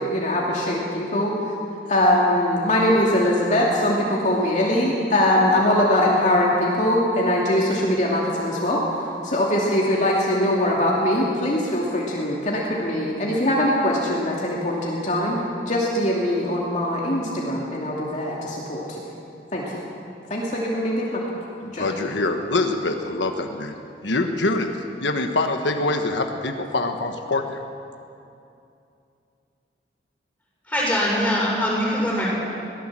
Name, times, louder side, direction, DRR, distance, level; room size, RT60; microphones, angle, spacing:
voice 1, 0.0-1.5 1.9-8.8 9.2-15.4 15.7-19.0 19.5-19.8 20.3-21.3 21.7-21.9, left 1 dB, 40° left, -4 dB, 2.7 m, -22 dB
voice 2, 21.6-27.6, left 2 dB, 85° left, 5 dB, 1.4 m, -25 dB
voice 3, 30.7-32.3, equal, 10° left, -5 dB, 6.8 m, -22 dB
22.0 x 17.0 x 7.6 m, 2.6 s
head